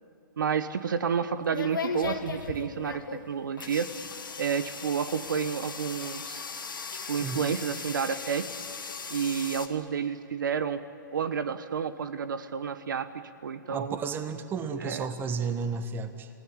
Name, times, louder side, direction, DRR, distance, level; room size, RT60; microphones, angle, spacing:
voice 1, 0.4-3.9 4.4-6.4 7.1-8.5 9.1-10.8 11.1-14.0 14.8-15.1, right 7 dB, 70° right, 12 dB, 1.3 m, -30 dB
sound 1, 0.7-9.7, left 5 dB, 85° left, 2.3 m, -38 dB
voice 2, 7.2-7.5 13.7-16.3, right 5 dB, 20° right, 10 dB, 1.6 m, -33 dB
28.5 x 18.0 x 9.9 m, 2.6 s
hypercardioid pair, 125°, 11 cm